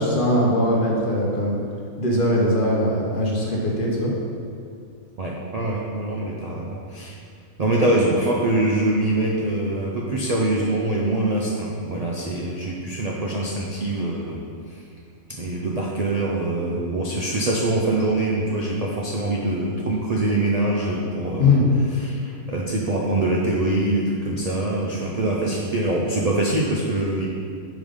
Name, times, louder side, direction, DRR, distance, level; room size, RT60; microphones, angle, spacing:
voice 1, 0.0-1.6 2.0-4.1 21.4-21.6, left 1 dB, 45° left, -3 dB, 0.8 m, -20 dB
voice 2, 5.2-7.1 7.6-14.4 14.7-14.8 15.3-21.6 21.9-27.3, right 2 dB, 70° right, -3 dB, 0.3 m, -24 dB
5.0 x 3.8 x 5.0 m, 2.3 s
omnidirectional pair, 1.4 m